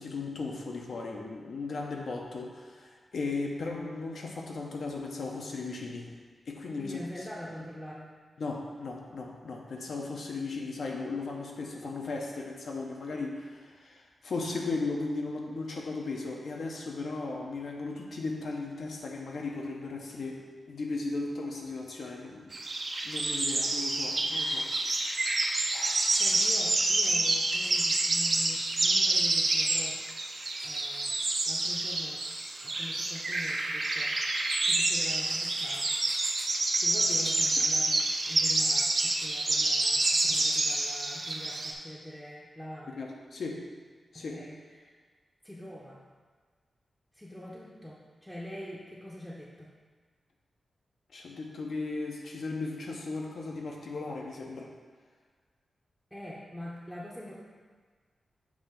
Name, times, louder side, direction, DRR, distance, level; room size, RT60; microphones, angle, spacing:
voice 1, 0.0-6.1 6.5-7.3 8.4-20.4 20.7-22.5 23.0-24.7 25.7-26.2 42.9-43.6 44.1-44.4 51.1-54.7, left 3 dB, 65° left, 0 dB, 0.8 m, -36 dB
voice 2, 6.8-8.1 26.2-30.0 30.6-31.1 31.5-32.2 32.6-34.2 34.6-36.0 36.8-43.0 44.1-44.9 45.4-46.0 47.2-49.7 56.1-57.3, left 1 dB, ahead, -7 dB, 0.7 m, -44 dB
sound 1, 22.5-41.7, right 2 dB, 40° right, 0.6 m, -28 dB
7.2 x 2.8 x 5.7 m, 1.5 s
wide cardioid pair, 155°, 0 cm